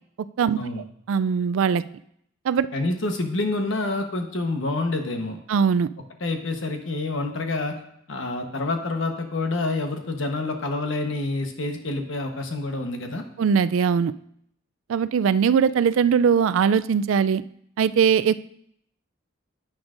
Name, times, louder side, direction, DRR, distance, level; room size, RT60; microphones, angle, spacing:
voice 1, 1.1-1.8 2.5-2.7 5.5-5.9 13.4-14.1 14.9-17.4 17.8-18.3, right 7 dB, 75° right, 15 dB, 0.3 m, -20 dB
voice 2, 2.7-5.4 6.2-7.8 8.1-13.2, left 2 dB, 65° left, 4 dB, 1.0 m, -27 dB
9.6 x 8.8 x 2.5 m, 0.71 s
head